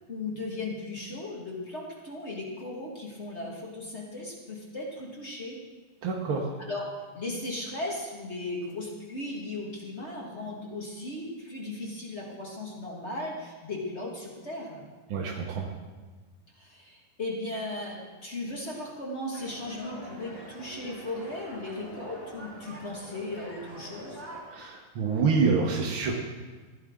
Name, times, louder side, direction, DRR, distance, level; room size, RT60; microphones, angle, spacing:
voice 1, 0.1-5.6 6.6-6.8 7.1-14.8 16.6-24.2, left 2 dB, 45° left, -2 dB, 0.8 m, -37 dB
voice 2, 6.0-6.5 15.1-15.7 24.5-26.1, right 5 dB, 70° right, -1 dB, 1.2 m, -27 dB
sound 1, 19.3-24.4, right 1 dB, 15° left, 4.0 m, -45 dB
16.0 x 11.0 x 3.7 m, 1.4 s
omnidirectional pair, 4.0 m